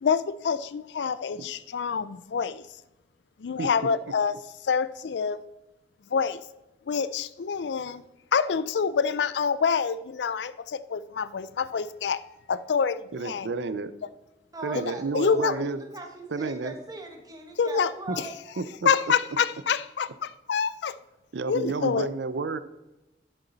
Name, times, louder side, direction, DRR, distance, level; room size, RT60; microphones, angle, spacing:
voice 1, 0.0-2.6 3.4-4.4 4.6-5.4 6.1-6.4 6.9-8.0 8.3-12.2 12.5-13.5 14.8-14.9 15.1-15.5 17.6-17.9 18.8-20.9 21.5-22.1, left 6 dB, 80° left, 0.4 m, -26 dB
voice 2, 13.1-13.9 14.6-15.8 16.3-16.7 18.1-18.2 18.6-18.9 21.3-22.6, right 4 dB, 85° right, 0.5 m, -31 dB
voice 3, 14.5-18.4, right 2 dB, 20° right, 1.4 m, -40 dB
11.0 x 7.0 x 4.0 m
head